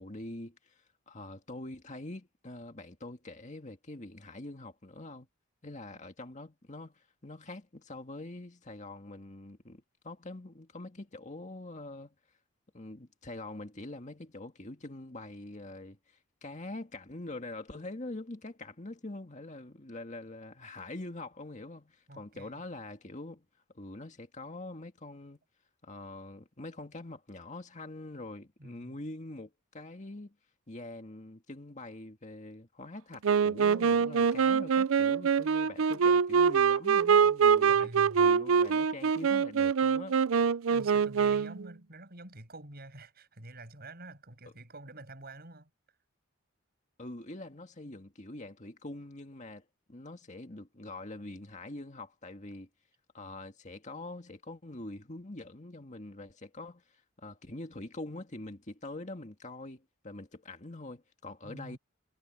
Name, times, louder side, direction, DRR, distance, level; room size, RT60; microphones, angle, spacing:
voice 1, 0.0-5.3 5.6-12.2 12.7-23.5 23.7-25.4 25.8-30.4 30.7-40.2 47.0-52.7 53.1-61.8, left 2 dB, 35° left, 2.0 m, -44 dB
voice 2, 22.1-22.6 28.6-29.0 37.6-38.3 40.7-45.7 61.4-61.8, right 2 dB, 50° right, 7.4 m, -48 dB
Wind instrument woodwind instrument, 33.2-41.6, right 6 dB, 80° right, 0.5 m, -25 dB
head